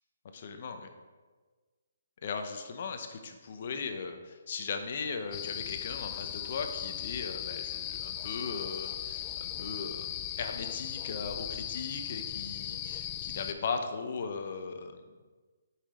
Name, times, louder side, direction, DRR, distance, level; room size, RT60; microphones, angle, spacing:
voice 1, 0.3-0.9 2.2-15.0, left 5 dB, 50° left, 6 dB, 0.8 m, -38 dB
sound 1, 5.3-13.5, left 11 dB, 25° left, 0.4 m, -38 dB
8.2 x 5.9 x 3.7 m, 1.4 s
hypercardioid pair, 155°, 0 cm